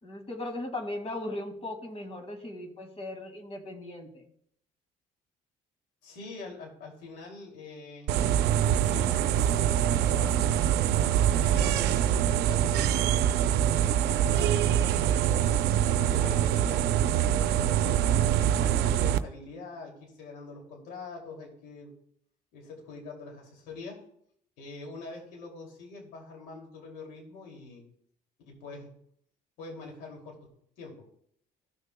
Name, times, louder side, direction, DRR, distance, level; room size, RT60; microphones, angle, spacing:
voice 1, 0.0-4.2, left 1 dB, 35° left, 5 dB, 2.1 m, -38 dB
voice 2, 6.0-8.1 8.8-10.7 11.1-13.1 13.7-18.0 18.6-21.9 22.5-24.0 24.6-27.8 28.5-28.9 29.6-30.4 30.8-30.9, left 3 dB, 85° left, 0 dB, 2.6 m, -44 dB
sound 1, 8.1-19.2, right 10 dB, 80° right, 0.6 m, -24 dB
15.5 x 6.5 x 2.3 m, 0.67 s
cardioid pair, 110°, 17 cm